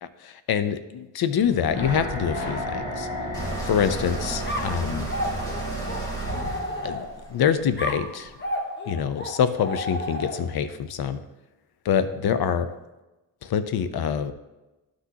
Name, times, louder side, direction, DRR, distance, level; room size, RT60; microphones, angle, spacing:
voice 1, 0.0-3.1 3.6-5.1 6.8-8.3 8.9-11.2 11.8-12.7 13.4-14.3, left 8 dB, 60° left, 12 dB, 0.6 m, -25 dB
sound 1, 1.4-6.6 6.9-7.0, left 1 dB, 80° left, 2.0 m, -34 dB
sound 2, 3.3-8.3, right 2 dB, 10° left, 2.0 m, -33 dB
sound 3, 4.4-7.3 7.8-10.6, left 1 dB, 25° left, 1.1 m, -32 dB
11.5 x 6.1 x 2.8 m, 1.0 s
wide cardioid pair, 120°, 43 cm